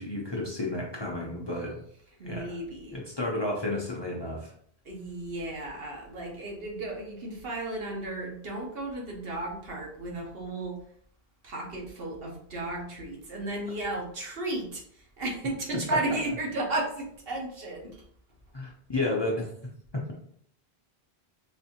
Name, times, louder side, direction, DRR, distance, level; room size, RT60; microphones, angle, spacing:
voice 1, 0.0-1.8 2.2-2.6 2.9-4.5 18.5-19.5 19.9-20.0, left 2 dB, 30° left, -4 dB, 0.6 m, -31 dB
voice 2, 2.2-3.0 4.8-10.8 11.4-18.0, right 2 dB, 70° right, -1 dB, 1.1 m, -34 dB
4.2 x 2.6 x 2.8 m, 0.64 s
omnidirectional pair, 1.0 m